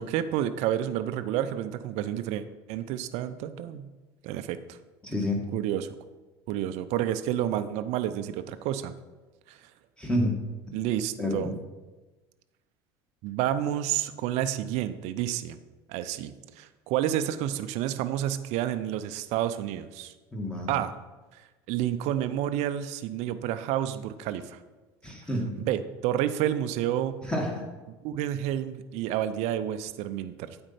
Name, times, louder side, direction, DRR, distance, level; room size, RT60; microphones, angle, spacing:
voice 1, 0.0-3.9 4.2-4.8 5.5-5.9 6.5-8.9 9.5-9.6 10.7-11.5 13.2-15.6 15.9-20.1 20.7-20.9 21.3-21.4 21.7-24.6 25.6-27.1 28.0-30.6, right 11 dB, 55° right, 12 dB, 0.5 m, -30 dB
voice 2, 5.0-5.4 10.0-10.3 11.2-11.5 20.3-20.7 25.0-25.5 27.3-27.6, left 1 dB, 5° left, 0 dB, 2.0 m, -28 dB
8.8 x 4.4 x 5.7 m, 1.2 s
hypercardioid pair, 70°, 13 cm